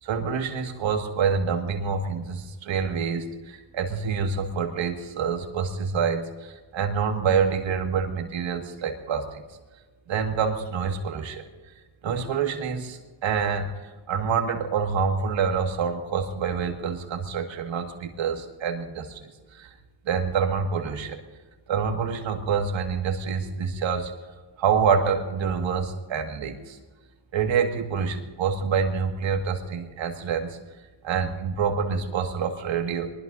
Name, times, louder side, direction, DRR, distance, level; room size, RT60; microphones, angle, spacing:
voice 1, 0.0-9.4 10.1-11.4 12.0-19.2 19.5-19.7 20.1-21.2 21.7-24.1 24.6-26.8 27.3-30.6 31.0-33.1, right 6 dB, 75° right, 3 dB, 2.1 m, -27 dB
23.0 x 21.0 x 2.7 m, 1.3 s
cardioid pair, 90°, 45 cm